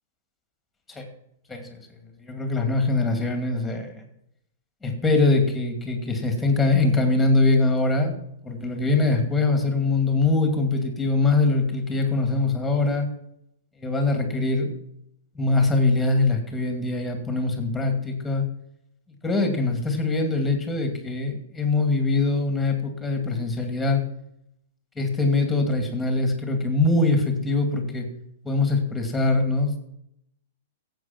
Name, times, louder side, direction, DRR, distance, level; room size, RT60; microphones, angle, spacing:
voice 1, 1.5-1.8 2.2-4.0 4.8-8.1 8.4-13.1 13.8-14.7 15.3-18.4 19.2-24.0 25.0-28.1 28.4-29.8, left 3 dB, 5° left, 5 dB, 2.5 m, -23 dB
15.5 x 8.2 x 5.9 m, 0.75 s
hypercardioid pair, 165°, 0 cm